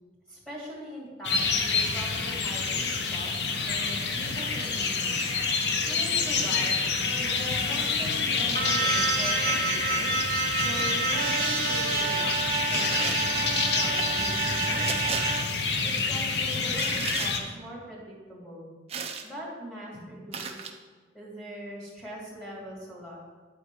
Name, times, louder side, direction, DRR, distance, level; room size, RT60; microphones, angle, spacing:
voice 1, 0.3-5.3 5.8-6.8 7.2-10.2 10.6-15.4 15.8-18.7 19.2-20.7 21.1-23.2, equal, 5° left, -6 dB, 2.5 m, -41 dB
sound 1, 1.2-17.4, left 4 dB, 70° left, 0.8 m, -28 dB
sound 2, 8.5-15.4, right 4 dB, 55° right, 1.2 m, -29 dB
sound 3, 10.6-10.9 12.7-13.2 14.9-15.3 16.7-17.3 18.9-19.3 20.3-20.7, right 6 dB, 35° right, 0.6 m, -34 dB
10.0 x 4.3 x 4.8 m, 1.4 s
head